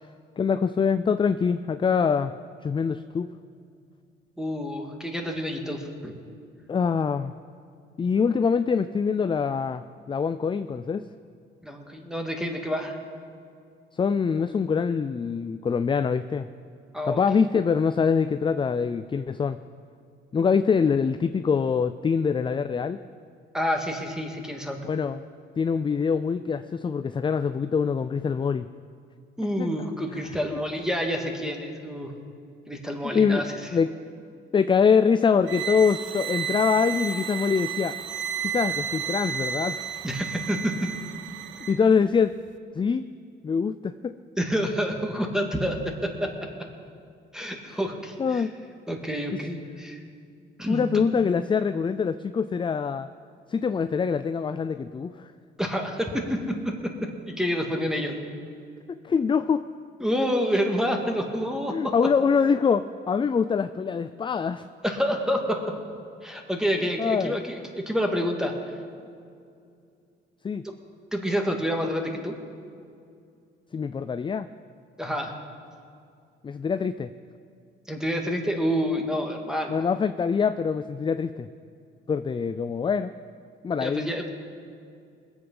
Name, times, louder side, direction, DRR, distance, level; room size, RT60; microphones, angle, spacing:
voice 1, 0.4-2.3 2.6-3.3 6.7-7.3 8.0-11.1 13.9-16.5 17.0-19.6 20.3-23.0 24.8-25.2 25.6-28.7 29.6-29.9 33.0-33.5 33.7-34.0 34.5-38.0 38.5-39.8 41.6-42.4 42.8-43.0 43.4-44.1 47.7-47.8 48.2-48.5 50.7-53.1 53.5-55.3 58.9-59.6 61.7-64.7 67.0-67.4 70.4-70.6 73.7-74.5 76.4-77.1 79.7-81.5 82.1-83.1 83.6-84.1, left 6 dB, 25° left, 11 dB, 0.4 m, -24 dB
voice 2, 4.4-6.2 11.6-13.0 16.9-17.2 23.5-24.8 29.4-32.1 32.7-33.5 40.0-40.7 44.4-46.3 47.3-48.4 48.9-50.0 50.6-50.9 55.6-56.6 56.8-58.2 60.0-61.9 64.8-65.6 66.2-68.5 70.6-70.7 71.1-72.3 75.0-75.3 77.9-79.8 83.8-84.3, equal, 5° right, 2 dB, 2.0 m, -28 dB
sound 1, 35.4-41.8, right 8 dB, 70° right, 0.7 m, -32 dB
20.5 x 7.9 x 5.5 m, 2.4 s
cardioid pair, 90°, 20 cm